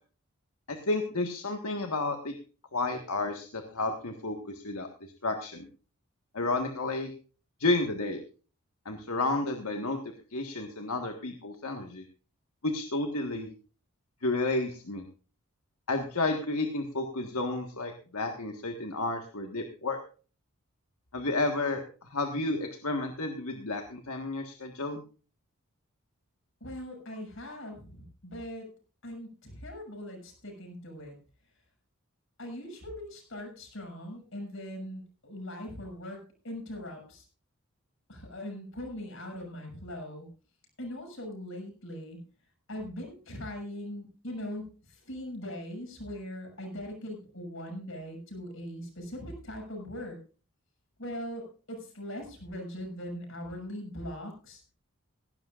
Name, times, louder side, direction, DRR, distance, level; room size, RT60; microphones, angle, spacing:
voice 1, 0.7-2.3 2.7-4.9 5.2-5.7 6.3-7.1 7.6-8.2 8.8-10.0 10.3-12.0 12.6-13.5 14.2-15.0 15.9-20.0 21.1-25.0, left 2 dB, 85° left, 4 dB, 1.6 m, -31 dB
voice 2, 26.6-28.7 29.0-31.1 32.4-36.2 36.4-37.2 38.1-40.3 40.8-42.2 42.7-44.6 45.1-50.2 51.0-54.6, left 1 dB, 60° left, 2 dB, 7.0 m, -40 dB
17.5 x 15.5 x 2.5 m, 0.37 s
head